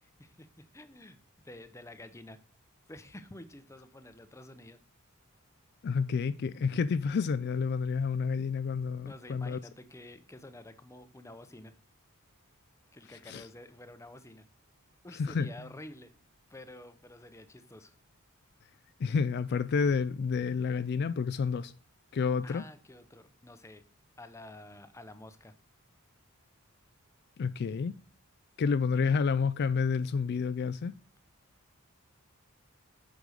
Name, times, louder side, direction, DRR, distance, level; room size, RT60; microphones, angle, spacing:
voice 1, 0.0-1.2 1.4-2.4 2.9-4.8 8.9-11.7 12.9-14.5 15.0-16.1 16.5-18.0 22.4-23.8 24.2-25.5, left 1 dB, 15° left, 0.7 m, -49 dB
voice 2, 5.8-9.6 13.3-13.5 15.2-15.5 19.0-21.7 22.1-22.6 27.4-27.9 28.6-30.9, left 5 dB, 50° left, 0.3 m, -29 dB
8.2 x 5.3 x 6.3 m
head